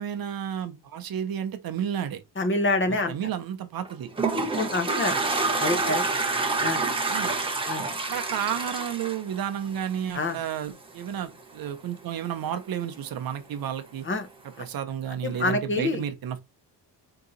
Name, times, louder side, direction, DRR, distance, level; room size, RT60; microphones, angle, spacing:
voice 1, 0.0-2.2 3.1-4.1 5.8-6.0 7.1-7.3 8.1-14.1 14.6-16.4, right 9 dB, 55° right, 0.7 m, -32 dB
voice 2, 2.4-3.1 4.6-5.2 5.6-6.0 6.6-6.8 7.7-7.9 10.1-10.4 14.1-14.3 15.2-16.0, left 2 dB, 30° left, 0.8 m, -26 dB
Toilet flush, 3.8-10.2, right 3 dB, 15° right, 0.6 m, -27 dB
3.8 x 2.8 x 3.8 m
cardioid pair, 125°, 42 cm